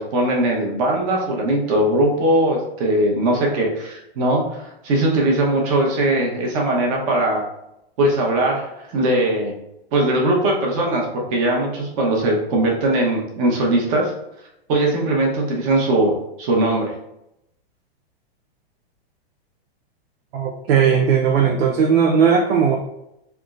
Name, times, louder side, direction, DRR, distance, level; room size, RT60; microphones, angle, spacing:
voice 1, 0.0-7.4 8.0-9.5 9.9-14.1 14.7-16.1 16.4-16.9, right 1 dB, 35° right, -1 dB, 1.0 m, -20 dB
voice 2, 20.3-22.8, right 7 dB, 80° right, 1 dB, 0.7 m, -17 dB
4.3 x 3.5 x 2.5 m, 0.83 s
supercardioid pair, 165°, 31 cm